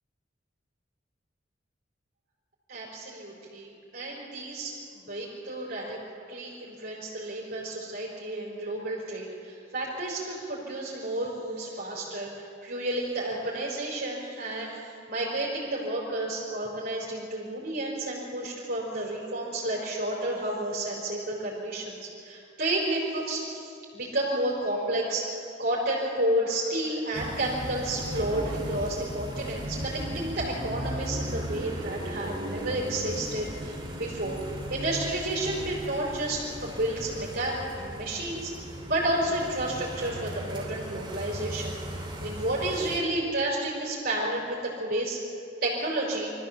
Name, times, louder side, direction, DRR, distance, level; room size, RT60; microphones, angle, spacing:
voice 1, 2.7-6.0 6.3-34.4 34.7-38.5 38.9-45.2 45.6-46.3, right 1 dB, 55° right, -4 dB, 4.8 m, -31 dB
sound 1, 27.1-43.0, right 1 dB, 25° right, 2.7 m, -37 dB
24.0 x 14.5 x 7.4 m, 2.5 s
head